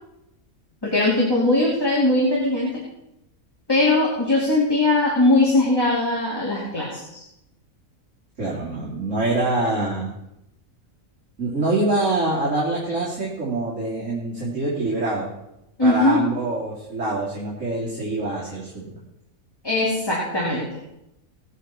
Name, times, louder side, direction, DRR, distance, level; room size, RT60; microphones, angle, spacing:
voice 1, 0.8-2.8 3.7-7.2 15.8-16.2 19.6-20.7, left 2 dB, 15° left, -5 dB, 2.9 m, -20 dB
voice 2, 8.4-10.1 11.4-15.3 15.8-19.0, right 2 dB, 60° right, -6 dB, 3.2 m, -25 dB
19.5 x 8.2 x 4.4 m, 0.86 s
omnidirectional pair, 1.5 m